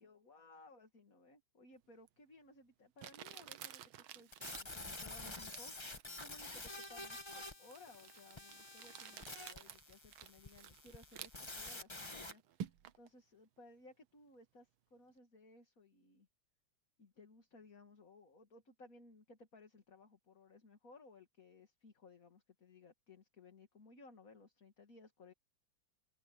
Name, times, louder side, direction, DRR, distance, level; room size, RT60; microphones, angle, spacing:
voice 1, 0.0-5.7 6.2-16.3 17.0-25.3, left 3 dB, 40° left, 2.7 m, -60 dB
Crumpling crinkling, 2.1-2.2 3.0-13.1, right 10 dB, 80° right, 1.7 m, -53 dB
sound 1, 4.3-12.3, left 2 dB, 15° left, 1.2 m, -49 dB
open air
omnidirectional pair, 2.2 m